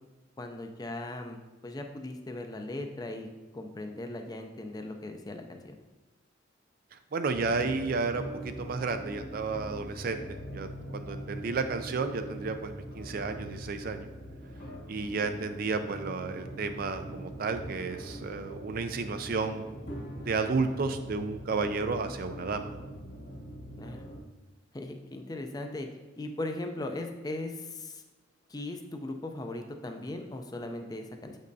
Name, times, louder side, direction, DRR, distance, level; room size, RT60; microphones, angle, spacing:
voice 1, 0.4-1.4 1.6-3.3 3.5-5.7 23.8-24.0 24.7-25.9 26.2-28.0 28.5-31.4, left 2 dB, 20° left, 5 dB, 0.4 m, -38 dB
voice 2, 6.9-14.1 14.9-19.6 20.2-22.7, right 4 dB, 50° right, 8 dB, 0.4 m, -32 dB
sound 1, 7.3-24.2, right 1 dB, 70° left, 2.0 m, -42 dB
7.5 x 5.2 x 2.7 m, 1.2 s
head